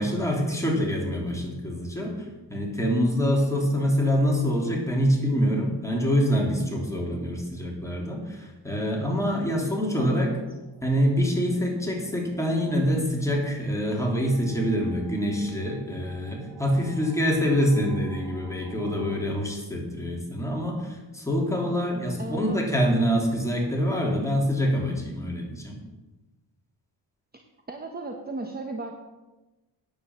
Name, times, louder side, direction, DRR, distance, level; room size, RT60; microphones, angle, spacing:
voice 1, 0.0-2.2 2.5-10.3 10.8-25.8, equal, 5° left, -1 dB, 3.2 m, -25 dB
sound 1, 9.6-19.2, right 2 dB, 65° right, 4.8 m, -48 dB
voice 2, 10.0-10.4 22.2-22.6 27.7-28.9, right 3 dB, 20° right, 3 dB, 1.1 m, -34 dB
9.5 x 7.9 x 7.6 m, 1.1 s
wide cardioid pair, 105°, 43 cm